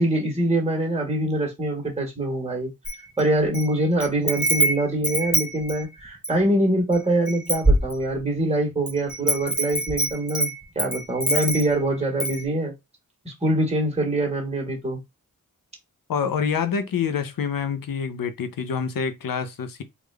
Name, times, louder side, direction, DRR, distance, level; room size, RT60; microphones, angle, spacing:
voice 1, 0.0-2.7 3.2-12.7 13.2-15.0, right 1 dB, 20° right, 1.4 m, -24 dB
Wind chime, 2.8-3.7 4.0-6.4 6.9-7.0 7.3-8.4 8.9-11.8 12.2-12.4, right 1 dB, 5° right, 1.0 m, -24 dB
voice 2, 16.1-19.8, left 6 dB, 75° left, 0.7 m, -26 dB
3.6 x 2.4 x 3.3 m
cardioid pair, 60°, 34 cm